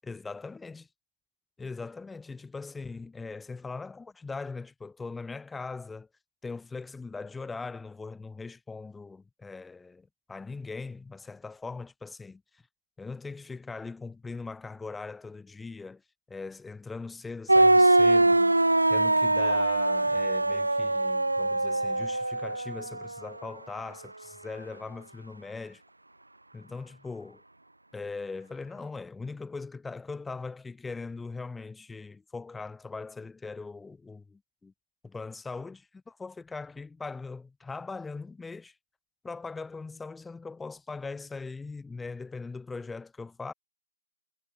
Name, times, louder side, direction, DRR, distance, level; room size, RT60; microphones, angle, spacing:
voice 1, 0.0-0.9 1.6-6.1 6.4-12.6 13.0-16.0 16.3-18.6 18.9-25.8 26.5-27.4 27.9-34.7 35.0-38.8 39.2-43.5, left 4 dB, ahead, 3.6 m, -40 dB
sound 1, 17.5-23.2, right 2 dB, 65° right, 0.4 m, -23 dB
figure-of-eight pair, 160°, 0 cm